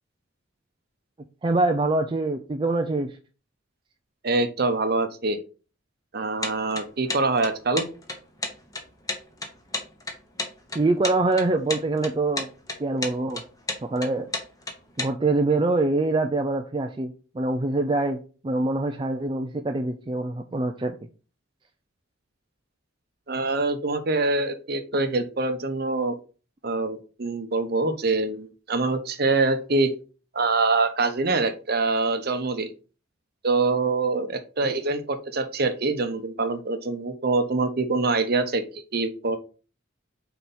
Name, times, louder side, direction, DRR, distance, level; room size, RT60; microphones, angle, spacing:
voice 1, 1.4-3.2 10.7-12.5 12.8-13.4 13.8-14.3 15.0-20.9, right 2 dB, 25° right, 5 dB, 0.4 m, -24 dB
voice 2, 4.2-5.4 6.1-7.9 23.3-26.2 26.6-29.9 30.3-32.7 33.4-39.4, right 3 dB, 50° right, 8 dB, 0.8 m, -25 dB
sound 1, 6.4-15.1, left 3 dB, 20° left, 1.0 m, -31 dB
4.5 x 4.2 x 5.3 m, 0.36 s
head